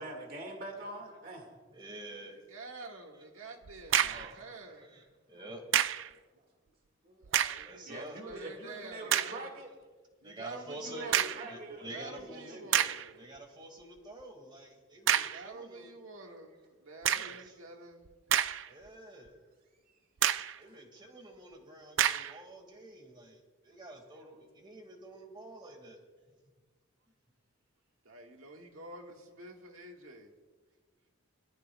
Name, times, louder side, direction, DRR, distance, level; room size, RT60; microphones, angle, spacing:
voice 1, 0.0-1.5 4.0-4.3 6.3-6.4 7.0-7.5 7.9-9.7 10.7-12.8 18.7-18.8 19.2-19.3, right 2 dB, 45° right, 2 dB, 2.1 m, -45 dB
voice 2, 1.7-2.4 2.9-3.0 4.1-4.3 4.8-5.6 7.6-8.2 10.2-11.1 11.4-12.6 13.2-15.9 17.1-17.6 18.7-19.3 20.6-26.0 26.3-26.4, right 1 dB, 20° right, 3 dB, 2.0 m, -48 dB
voice 3, 2.3-5.0 7.2-9.5 10.2-13.3 15.1-18.1 28.0-30.3, right 2 dB, 85° right, 2 dB, 1.7 m, -48 dB
sound 1, 3.7-4.3 5.7-6.1 7.2-7.7 8.3-8.4 9.1-9.4 11.1-11.5 12.2-12.3 12.7-13.1 15.1-15.5 17.0-17.4 18.1-18.9 19.3-19.4 20.2-20.6 22.0-22.4, right 10 dB, 65° right, 0.4 m, -29 dB
22.0 x 13.5 x 2.3 m, 1.4 s
head